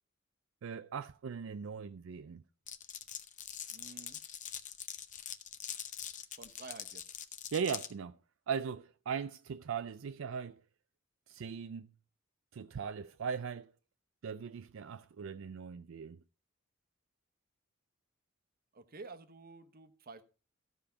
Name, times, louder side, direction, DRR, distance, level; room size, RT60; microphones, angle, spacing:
voice 1, 0.6-2.4 7.5-8.2 8.5-10.6 11.3-11.9 12.5-13.7 14.2-16.2, right 6 dB, 70° right, 0.4 m, -39 dB
Glass, 2.7-7.9, left 9 dB, 40° left, 0.7 m, -44 dB
voice 2, 3.7-4.2 6.4-7.0 18.7-20.2, right 3 dB, 50° right, 1.0 m, -50 dB
14.0 x 5.1 x 5.8 m
head